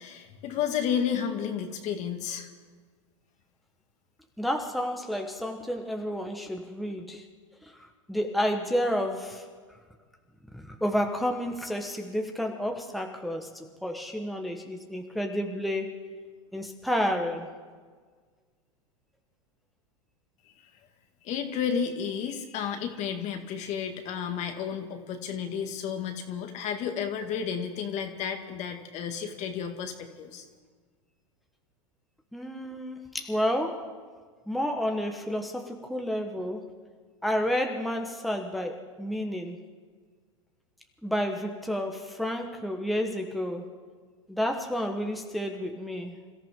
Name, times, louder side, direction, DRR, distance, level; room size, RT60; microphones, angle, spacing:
voice 1, 0.0-2.5 21.2-30.5, left 7 dB, 45° left, 5 dB, 1.9 m, -32 dB
voice 2, 4.4-7.2 7.6-7.7 8.1-9.4 10.5-16.0 16.5-17.5 32.3-33.9 34.5-36.6 37.2-39.6 41.0-43.6 44.3-46.2, equal, ahead, 3 dB, 1.2 m, -30 dB
27.5 x 14.0 x 3.7 m, 1.6 s
hypercardioid pair, 110°, 17 cm